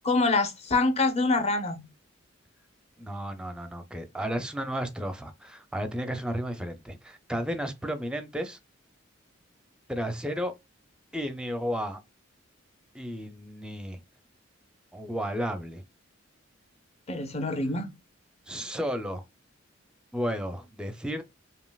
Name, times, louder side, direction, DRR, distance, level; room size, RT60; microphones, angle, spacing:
voice 1, 0.0-1.8 17.1-17.9, left 3 dB, 30° left, 0.8 m, -25 dB
voice 2, 3.0-8.6 9.9-10.5 11.1-12.0 12.9-14.0 14.9-15.8 18.5-19.2 20.1-21.2, equal, 5° right, 0.5 m, -33 dB
5.2 x 2.8 x 2.3 m
head